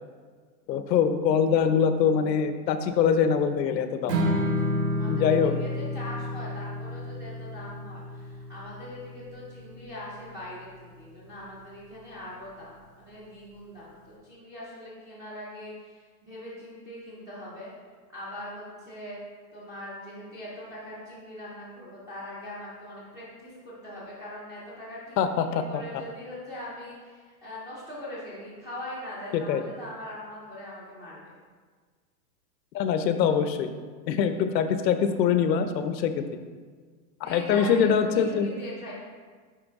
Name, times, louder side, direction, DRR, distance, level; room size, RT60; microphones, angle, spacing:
voice 1, 0.7-4.2 5.1-5.6 25.2-26.0 29.3-29.6 32.7-33.7 34.1-36.4 37.2-38.5, left 7 dB, 85° left, 9 dB, 0.7 m, -24 dB
Strum, 4.1-10.4, left 1 dB, 80° right, 1.4 m, -31 dB
voice 2, 4.9-17.7 18.1-19.2 19.5-31.2 37.2-38.9, left 1 dB, 10° right, -9 dB, 0.4 m, -41 dB
9.4 x 3.3 x 3.5 m, 1.6 s
supercardioid pair, 150°, 49 cm